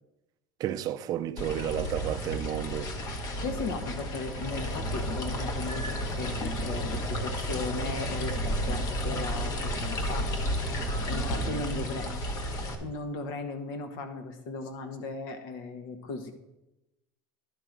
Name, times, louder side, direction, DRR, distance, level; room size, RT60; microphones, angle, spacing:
voice 1, 0.6-2.9, right 11 dB, 35° right, 0.4 m, -32 dB
sound 1, 1.4-12.8, equal, 35° left, 1.0 m, -32 dB
voice 2, 3.4-12.2 12.8-16.3, left 3 dB, 65° left, 1.1 m, -37 dB
11.0 x 3.8 x 5.9 m
supercardioid pair, 145°, 10 cm